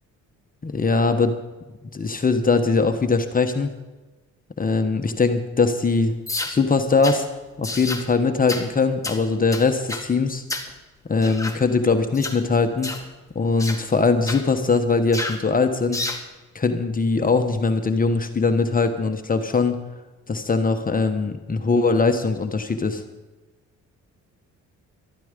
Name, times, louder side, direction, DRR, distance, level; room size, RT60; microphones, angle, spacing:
voice 1, 0.6-1.3 1.9-3.7 4.6-6.1 6.5-7.3 7.6-10.4 11.1-12.9 13.3-16.0 16.5-19.8 20.3-23.0, left 4 dB, 30° left, 6 dB, 1.2 m, -21 dB
sound 1, 6.3-6.6 7.0-7.2 7.6-8.1 8.5-8.7 9.0-9.2 9.5-10.1 10.5-10.7 11.2-11.6 12.1-12.4 12.8-13.1 13.6-13.8 14.3-14.4 15.1-15.4 15.9-16.2, left 2 dB, 10° left, 1.8 m, -30 dB
13.5 x 12.5 x 5.2 m, 1.2 s
cardioid pair, 90°, 30 cm